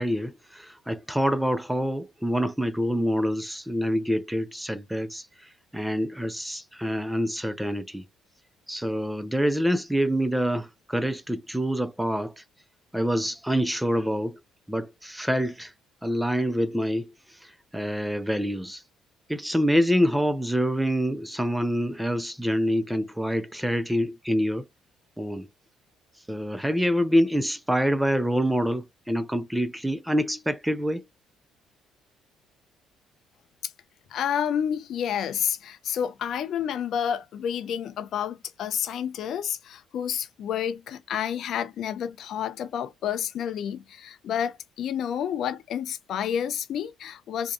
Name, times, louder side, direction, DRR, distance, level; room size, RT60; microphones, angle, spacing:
voice 1, 0.0-5.3 5.7-8.0 8.7-12.3 12.9-14.4 14.7-15.7 16.0-17.1 17.7-18.8 19.3-24.7 25.2-25.5 26.3-31.0, equal, 5° right, 0.4 m, -26 dB
voice 2, 34.1-47.5, left 9 dB, 65° left, 0.4 m, -30 dB
2.6 x 2.1 x 2.4 m
cardioid pair, 85°, 0 cm